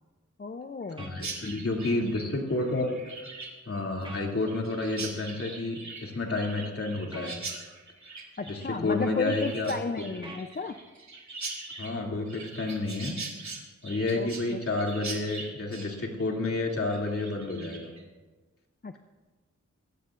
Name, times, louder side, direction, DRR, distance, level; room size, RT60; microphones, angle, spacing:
voice 1, 0.4-1.1 8.4-10.7 14.1-14.6 18.8-19.0, left 4 dB, 30° left, 7 dB, 0.6 m, -33 dB
voice 2, 1.0-2.9 3.7-7.4 8.5-10.1 11.8-13.2 13.8-17.9, left 2 dB, 50° left, 0 dB, 2.7 m, -30 dB
sound 1, 1.0-1.2 4.0-4.3 7.1-7.4 10.2-10.5, right 1 dB, 15° right, 1.8 m, -43 dB
Chirp tweet, 1.2-18.0, right 3 dB, 65° right, 2.4 m, -42 dB
21.5 x 15.5 x 2.5 m, 1.3 s
wide cardioid pair, 70°, 30 cm